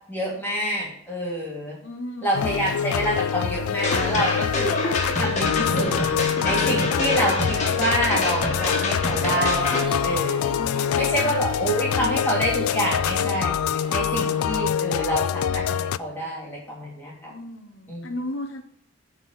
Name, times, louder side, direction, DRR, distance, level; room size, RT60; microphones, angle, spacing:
voice 1, 0.1-1.8 2.2-4.8 5.2-5.9 6.4-17.3 17.9-18.0, equal, 10° left, -4 dB, 3.1 m, -27 dB
voice 2, 1.8-2.4 10.5-11.4 17.3-18.6, left 1 dB, 60° left, 3 dB, 0.8 m, -35 dB
sound 1, 2.3-16.0, left 8 dB, 80° left, 0.3 m, -25 dB
sound 2, 3.8-9.8, left 2 dB, 35° left, 1.7 m, -26 dB
sound 3, 7.2-14.7, right 1 dB, 20° right, 0.8 m, -38 dB
9.3 x 4.3 x 7.5 m, 0.70 s
head